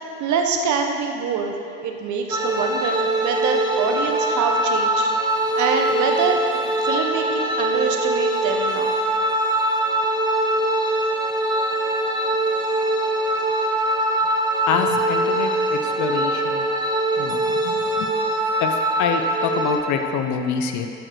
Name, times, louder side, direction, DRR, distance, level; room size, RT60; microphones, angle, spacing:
voice 1, 0.2-1.6 1.8-6.4 6.8-9.0, right 5 dB, 45° right, 3 dB, 1.2 m, -25 dB
sound 1, 2.3-19.8, right 1 dB, 10° right, 1.0 m, -22 dB
voice 2, 14.7-16.7 17.2-18.1 18.6-18.7 19.0-20.9, left 7 dB, 45° left, 5 dB, 0.8 m, -26 dB
13.5 x 8.7 x 3.2 m, 2.6 s
figure-of-eight pair, 60°, 40 cm